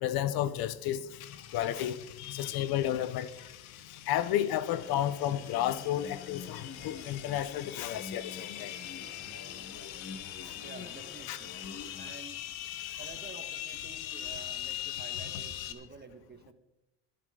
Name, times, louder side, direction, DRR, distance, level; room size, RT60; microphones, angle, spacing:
voice 1, 0.0-1.2 1.5-3.5 4.1-8.7 11.3-11.4 13.9-14.0, left 11 dB, 60° left, 0.9 m, -32 dB
sound 1, 1.2-15.7, left 12 dB, 90° left, 1.3 m, -42 dB
sound 2, 4.7-12.1, left 5 dB, 30° left, 1.2 m, -47 dB
voice 2, 10.6-11.6 12.0-12.4 13.0-16.5, right 4 dB, 25° right, 2.0 m, -50 dB
22.5 x 10.0 x 3.9 m
supercardioid pair, 85°, 42 cm